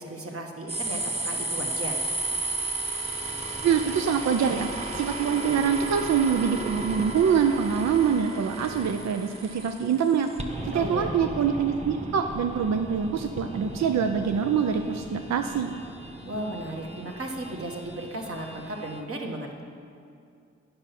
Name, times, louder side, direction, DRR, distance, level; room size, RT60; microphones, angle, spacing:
voice 1, 0.0-2.0 10.7-11.1 16.2-19.6, right 1 dB, 50° right, 1 dB, 1.4 m, -35 dB
sound 1, 0.7-19.0, right 2 dB, 20° right, 1.2 m, -35 dB
voice 2, 3.6-10.3 10.6-15.7, right 7 dB, 65° right, 6 dB, 0.5 m, -25 dB
9.6 x 5.6 x 5.9 m, 2.4 s
supercardioid pair, 40°, 30 cm